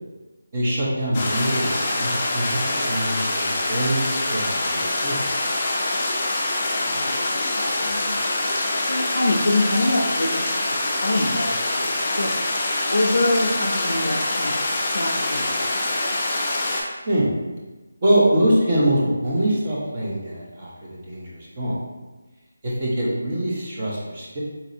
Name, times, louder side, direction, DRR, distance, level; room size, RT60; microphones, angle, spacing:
voice 1, 0.5-5.1 17.1-17.3 18.0-20.7 21.1-21.8 22.6-24.4, right 1 dB, 30° right, -5 dB, 0.8 m, -23 dB
sound 1, 1.1-16.8, left 2 dB, 25° left, 0.5 m, -25 dB
voice 2, 6.8-8.2 8.9-12.4 12.9-14.5 14.9-15.8, left 2 dB, 85° left, 4 dB, 0.5 m, -25 dB
4.0 x 2.6 x 2.5 m, 1.2 s
figure-of-eight pair, 170°, 0 cm